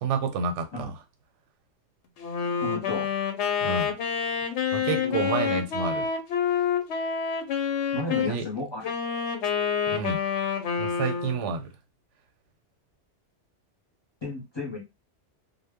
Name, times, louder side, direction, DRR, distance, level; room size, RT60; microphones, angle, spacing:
voice 1, 0.0-0.9 3.6-3.9 4.7-6.1 8.3-8.5 9.9-10.2 10.8-11.7, right 5 dB, 85° right, 0.9 m, -29 dB
Wind instrument woodwind instrument, 2.2-8.3 8.8-11.5, left 7 dB, 75° left, 0.9 m, -28 dB
voice 2, 2.6-3.1 5.0-5.6 7.9-8.9 14.2-14.8, left 2 dB, 25° left, 0.7 m, -33 dB
2.1 x 2.0 x 3.4 m
omnidirectional pair, 1.2 m